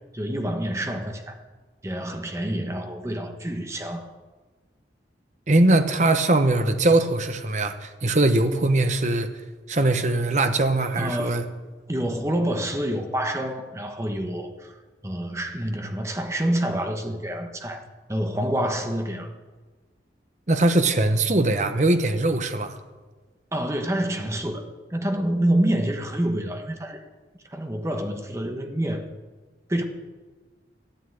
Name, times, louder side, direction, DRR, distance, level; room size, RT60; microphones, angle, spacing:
voice 1, 0.1-1.4 1.8-4.1 11.0-11.6 11.9-14.7 15.0-17.8 18.1-19.3 23.5-27.0 27.5-29.0 29.7-29.8, right 1 dB, 15° right, 5 dB, 1.3 m, -27 dB
voice 2, 5.5-9.4 9.7-11.4 20.5-22.8, right 2 dB, 40° right, 8 dB, 1.1 m, -21 dB
13.0 x 9.2 x 9.2 m, 1.3 s
head